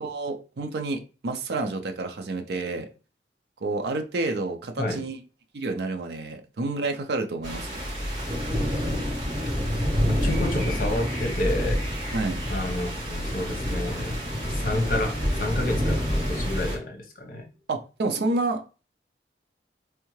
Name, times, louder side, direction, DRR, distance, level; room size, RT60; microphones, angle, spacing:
voice 1, 0.0-2.9 3.6-5.2 5.5-7.8 12.1-12.4 17.7-18.6, right 3 dB, 70° right, 0.5 m, -29 dB
sound 1, 7.4-16.8, equal, 35° right, 2.3 m, -27 dB
voice 2, 10.1-11.8 12.5-17.5, left 1 dB, 50° left, 0.9 m, -30 dB
3.5 x 3.3 x 3.1 m
head